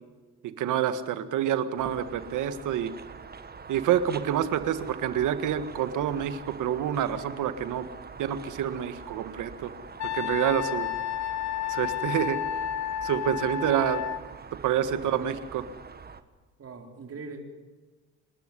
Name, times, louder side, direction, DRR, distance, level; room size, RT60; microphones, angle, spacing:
voice 1, 0.4-2.9 3.7-7.9 8.2-9.7 10.0-10.9 11.7-12.4 13.0-14.0 14.6-15.6, right 10 dB, 85° right, 11 dB, 1.8 m, -27 dB
sound 1, 1.8-16.2, right 5 dB, 30° right, 1.6 m, -45 dB
Wind instrument woodwind instrument, 10.0-14.2, left 11 dB, 65° left, 1.6 m, -31 dB
voice 2, 14.9-15.3 16.6-17.4, right 4 dB, 50° right, 4 dB, 4.2 m, -42 dB
28.0 x 13.0 x 9.9 m, 1.3 s
cardioid pair, 90°, 30 cm